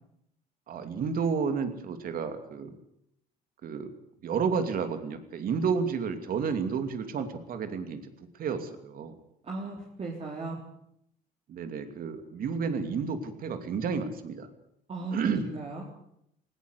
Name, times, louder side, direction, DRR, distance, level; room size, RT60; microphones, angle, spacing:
voice 1, 0.7-2.7 3.6-3.9 4.2-8.0 8.4-9.2 11.5-14.5 15.1-15.5, right 6 dB, 60° right, 8 dB, 2.9 m, -31 dB
voice 2, 9.4-10.6 14.9-15.8, right 3 dB, 40° right, -1 dB, 3.9 m, -36 dB
19.0 x 17.5 x 8.3 m, 0.76 s
cardioid pair, 110°, 17 cm